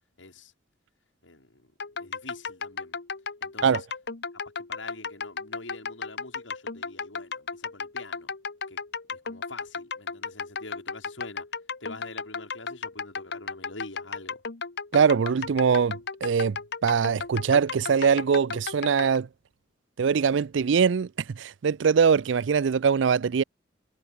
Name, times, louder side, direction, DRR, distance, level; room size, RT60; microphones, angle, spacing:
voice 1, 0.2-0.5 1.2-1.7 2.0-3.0 3.4-3.9 4.6-8.3 8.7-8.8 9.1-11.5 11.8-14.4, left 2 dB, 80° left, 4.4 m, -45 dB
sound 1, 1.8-19.2, left 5 dB, 60° left, 1.2 m, -35 dB
voice 2, 14.9-16.6 16.8-19.3 20.0-21.1 21.3-23.4, right 6 dB, 75° right, 0.4 m, -22 dB
head